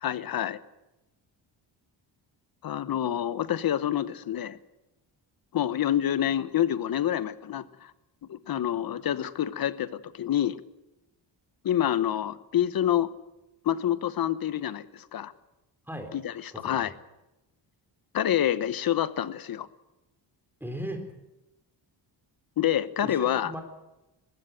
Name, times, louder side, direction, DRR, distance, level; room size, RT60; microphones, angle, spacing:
voice 1, 0.0-0.6 2.6-4.6 5.5-7.9 8.3-10.6 11.6-13.1 13.6-15.3 16.1-16.9 18.1-19.7 22.6-23.5, left 11 dB, 50° left, 15 dB, 1.1 m, -27 dB
voice 2, 20.6-21.0 23.0-23.6, equal, 5° right, 5 dB, 3.7 m, -36 dB
21.5 x 15.5 x 9.2 m, 0.97 s
cardioid pair, 150°, 45 cm